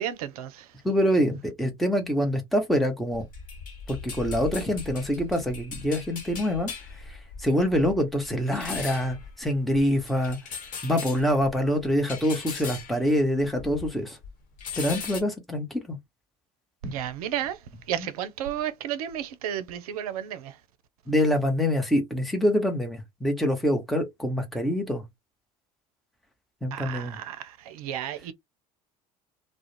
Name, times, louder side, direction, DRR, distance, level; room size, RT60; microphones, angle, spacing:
voice 1, 0.0-0.7 16.8-17.6 17.9-20.5 26.7-28.3, right 10 dB, 75° right, 0.5 m, -32 dB
voice 2, 0.8-3.2 3.9-6.7 7.1-10.4 10.8-14.2 14.8-16.0 16.8-16.9 18.0-18.1 21.1-25.0 26.6-27.2, equal, ahead, 0.9 m, -25 dB
sound 1, 3.1-14.0 14.2-15.2, left 5 dB, 45° left, 1.0 m, -39 dB
2.3 x 2.1 x 2.9 m
hypercardioid pair, 70°, 19 cm